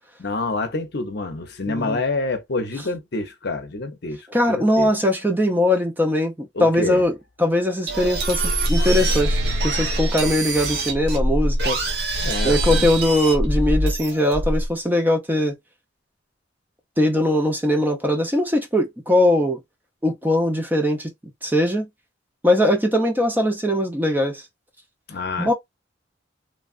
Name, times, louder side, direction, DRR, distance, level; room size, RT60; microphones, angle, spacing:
voice 1, 0.2-4.9 6.5-7.0 12.2-12.9 25.1-25.5, left 2 dB, 60° left, 0.7 m, -27 dB
voice 2, 1.7-2.0 4.3-7.1 7.4-9.4 9.6-11.8 12.4-15.6 17.0-19.6 20.0-21.1 21.4-21.9 22.4-24.4 25.4-25.5, left 1 dB, 10° right, 0.6 m, -20 dB
sound 1, 7.9-14.7, right 1 dB, 60° right, 0.9 m, -23 dB
3.2 x 2.3 x 2.4 m
head